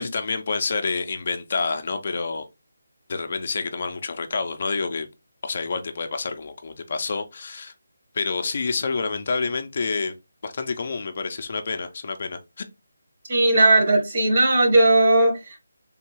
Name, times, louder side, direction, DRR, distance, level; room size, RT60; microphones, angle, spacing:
voice 1, 0.0-2.5 3.1-5.1 5.4-7.7 8.1-10.1 10.4-12.7, left 4 dB, 40° left, 0.4 m, -28 dB
voice 2, 13.3-15.6, right 2 dB, 40° right, 1.0 m, -17 dB
3.4 x 2.2 x 3.0 m
figure-of-eight pair, 170°, 0 cm